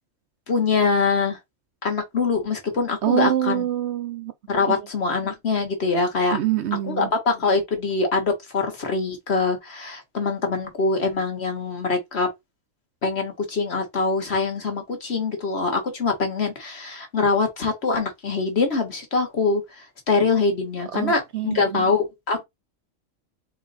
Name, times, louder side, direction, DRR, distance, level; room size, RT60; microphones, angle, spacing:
voice 1, 0.5-1.4 1.8-3.6 4.5-6.4 6.9-12.3 13.0-19.6 20.1-22.4, left 4 dB, 55° left, 1.6 m, -23 dB
voice 2, 3.0-4.3 6.3-7.1 20.9-21.9, right 12 dB, 65° right, 0.8 m, -25 dB
3.9 x 3.2 x 4.0 m
omnidirectional pair, 1.4 m